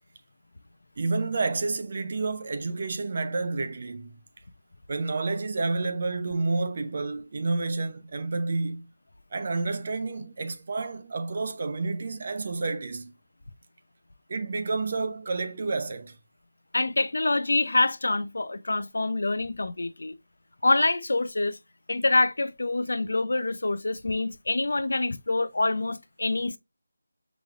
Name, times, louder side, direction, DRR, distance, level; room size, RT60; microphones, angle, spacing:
voice 1, 1.0-4.2 4.9-8.9 9.3-13.1 14.3-16.2, right 3 dB, 35° right, 0.5 m, -30 dB
voice 2, 16.7-20.1 20.6-21.6 21.9-26.6, left 2 dB, 70° left, 0.5 m, -26 dB
6.0 x 3.1 x 2.4 m
figure-of-eight pair, 175°, 0 cm